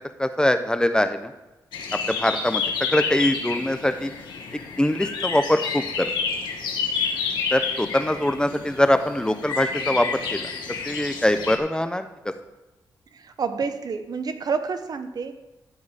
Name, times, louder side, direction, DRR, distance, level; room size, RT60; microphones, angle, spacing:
voice 1, 0.2-1.3 2.1-4.1 4.8-6.1 7.5-10.5 10.8-12.1, left 1 dB, 10° left, 9 dB, 0.7 m, -23 dB
sound 1, 1.7-11.6, left 5 dB, 90° left, 1.2 m, -29 dB
voice 2, 13.1-15.3, right 5 dB, 60° right, 9 dB, 0.8 m, -29 dB
14.0 x 4.8 x 4.9 m, 1.0 s
cardioid pair, 65°, 8 cm